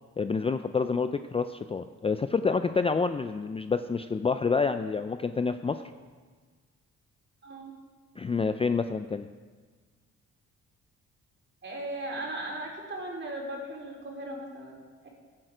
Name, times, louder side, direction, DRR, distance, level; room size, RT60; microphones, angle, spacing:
voice 1, 0.2-5.8 8.2-9.3, left 5 dB, 20° left, 10 dB, 0.4 m, -28 dB
voice 2, 7.4-7.7 11.6-14.8 15.0-15.1, right 1 dB, 40° right, -2 dB, 4.0 m, -37 dB
16.0 x 8.9 x 5.0 m, 1.5 s
cardioid pair, 90°, 30 cm